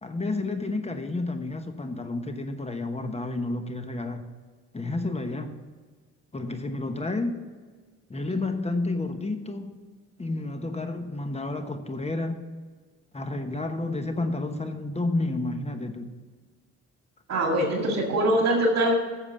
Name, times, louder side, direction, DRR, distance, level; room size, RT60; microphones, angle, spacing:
voice 1, 0.0-4.3 4.7-5.6 6.3-7.4 8.1-9.8 10.2-12.4 13.1-16.2, left 2 dB, 20° left, 7 dB, 1.0 m, -30 dB
voice 2, 17.3-18.9, right 1 dB, 60° right, 1 dB, 2.1 m, -23 dB
8.8 x 6.9 x 6.8 m, 1.5 s
cardioid pair, 90°, 30 cm